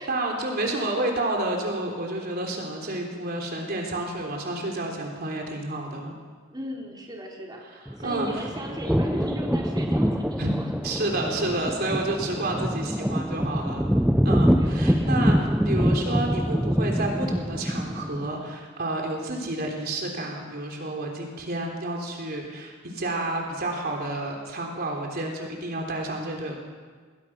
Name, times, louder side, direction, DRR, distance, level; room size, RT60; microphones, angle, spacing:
voice 1, 0.0-6.2 8.0-8.4 10.4-10.5 10.8-13.9 14.2-26.5, right 2 dB, 50° right, 1 dB, 3.7 m, -30 dB
voice 2, 6.5-7.6 7.9-10.7 11.0-11.1 14.5-15.2, equal, 20° right, -2 dB, 4.0 m, -37 dB
sound 1, 7.9-18.3, equal, 5° right, 0.6 m, -25 dB
29.0 x 21.5 x 6.2 m, 1.5 s
head